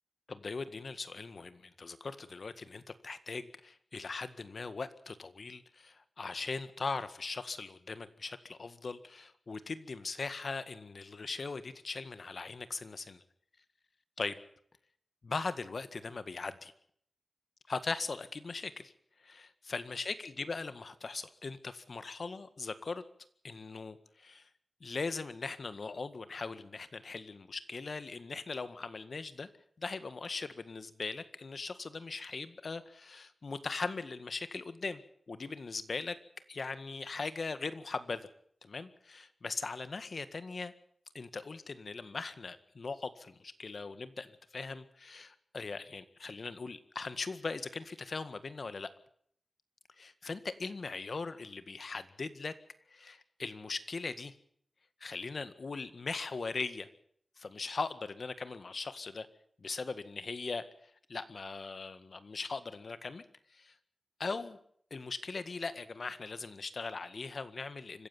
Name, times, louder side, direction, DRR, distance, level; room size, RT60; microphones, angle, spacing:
voice 1, 0.3-13.2 14.2-14.4 15.2-16.7 17.7-18.9 19.2-23.0 23.4-24.5 24.8-29.5 29.8-35.0 35.3-36.2 36.5-38.3 38.6-40.7 41.1-48.9 50.0-52.5 52.9-54.3 55.0-56.9 57.4-59.3 59.6-63.2 63.5-63.7 64.2-64.6 64.9-68.1, left 4 dB, 60° left, 12 dB, 1.8 m, -40 dB
25.5 x 15.5 x 7.2 m, 0.64 s
wide cardioid pair, 105°, 0 cm